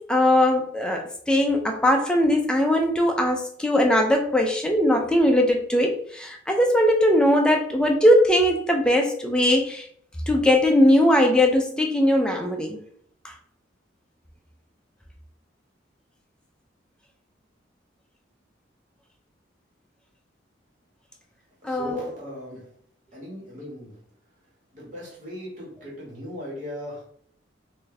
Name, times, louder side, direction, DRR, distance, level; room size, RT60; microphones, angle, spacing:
voice 1, 0.0-9.9 10.3-12.8 13.2-13.3 21.6-22.0, left 1 dB, 5° left, 2 dB, 0.5 m, -20 dB
voice 2, 21.6-22.7 23.1-23.9 24.7-27.0, equal, 40° right, -5 dB, 1.6 m, -38 dB
4.3 x 2.7 x 3.2 m, 0.62 s
head